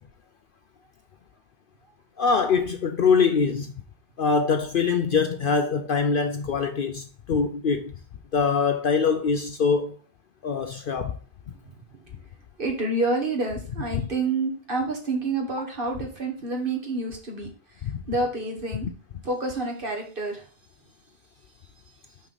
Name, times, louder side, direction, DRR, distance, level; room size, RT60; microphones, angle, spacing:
voice 1, 2.2-3.7 4.2-7.9 8.3-10.0 10.4-11.2 13.9-14.0 17.8-18.0, left 5 dB, 55° left, 0.7 m, -23 dB
voice 2, 12.6-18.9 19.2-20.5, right 2 dB, 45° right, 1.9 m, -28 dB
5.9 x 5.6 x 4.0 m
omnidirectional pair, 1.2 m